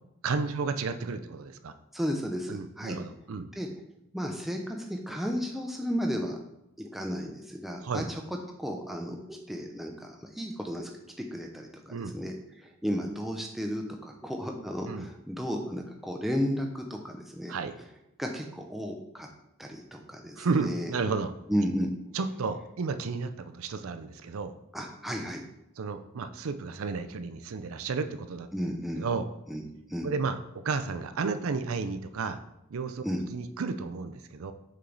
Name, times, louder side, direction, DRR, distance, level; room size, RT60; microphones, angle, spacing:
voice 1, 0.2-1.7 2.5-3.5 7.8-8.1 11.9-12.1 14.9-15.1 17.5-17.7 20.4-21.3 22.1-24.5 25.8-28.5 29.0-29.3 30.0-30.4 30.6-32.4 32.7-33.0 33.3-34.5, right 4 dB, 80° right, 9 dB, 0.5 m, -32 dB
voice 2, 1.9-3.0 3.6-3.7 4.1-6.4 6.8-8.2 8.6-10.9 11.3-12.3 12.6-17.5 18.2-19.3 19.6-20.9 21.5-21.9 24.7-25.4 28.5-29.1 29.5-30.1 33.0-33.2, equal, ahead, 2 dB, 0.6 m, -33 dB
6.6 x 4.5 x 3.9 m, 0.85 s
head